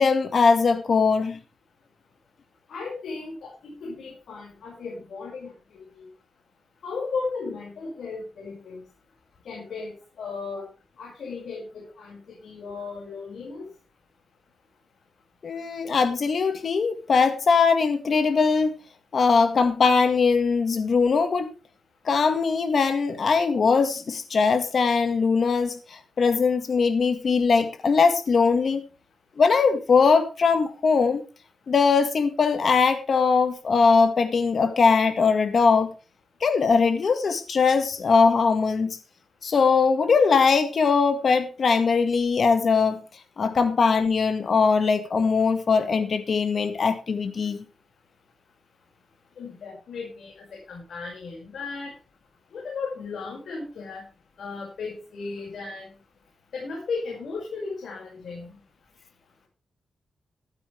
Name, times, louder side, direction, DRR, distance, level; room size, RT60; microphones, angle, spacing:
voice 1, 0.0-1.4 15.4-18.7 19.1-21.5 22.1-28.8 29.4-31.2 31.7-35.9 36.4-39.0 39.4-43.0 43.4-47.6, left 5 dB, 60° left, 8 dB, 1.8 m, -21 dB
voice 2, 2.7-6.1 6.8-8.8 9.4-10.7 11.0-13.7 49.4-52.0 52.5-54.0 54.4-55.9 56.5-58.5, left 4 dB, 75° left, -1 dB, 5.9 m, -35 dB
13.5 x 13.0 x 3.4 m, 0.32 s
cardioid pair, 95°, 0 cm